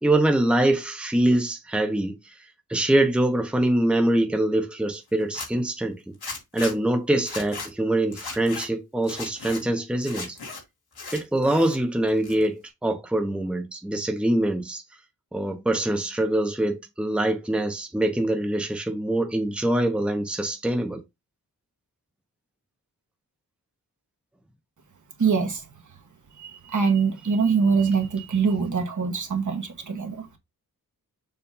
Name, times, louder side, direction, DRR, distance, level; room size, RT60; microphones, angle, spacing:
voice 1, 0.0-6.1 6.5-10.4 11.1-14.8 15.3-21.0, right 1 dB, 5° right, 0.9 m, -24 dB
Zipper (clothing), 5.2-5.5 6.2-6.7 7.2-7.7 8.1-8.7 9.0-9.6 10.0-10.6 10.9-11.8 12.1-12.7, left 4 dB, 80° left, 2.3 m, -36 dB
voice 2, 25.2-25.7 26.3-30.4, right 5 dB, 55° right, 1.3 m, -24 dB
6.9 x 2.5 x 5.5 m
wide cardioid pair, 105°, 37 cm